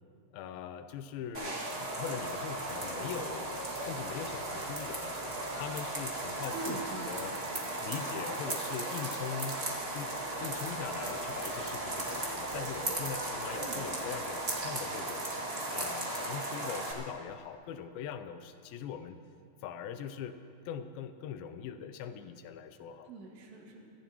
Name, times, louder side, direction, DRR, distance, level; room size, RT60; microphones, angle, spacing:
voice 1, 0.3-5.2 5.5-6.8 7.1-7.4 7.8-9.6 9.9-15.3 15.7-19.2 19.6-20.4 20.7-23.1, left 8 dB, 85° left, 10 dB, 2.1 m, -41 dB
sound 1, 1.3-16.9, right 2 dB, 60° right, 0.6 m, -36 dB
Singing, 1.6-2.5 2.8-4.0 4.4-5.7 6.4-7.7 8.4-9.7 10.5-11.8 12.5-13.8, right 1 dB, 35° right, 3.3 m, -46 dB
voice 2, 6.5-7.1 13.5-14.0 23.0-23.8, right 2 dB, 80° right, -1 dB, 4.0 m, -42 dB
25.5 x 15.5 x 3.0 m, 2.5 s
omnidirectional pair, 4.8 m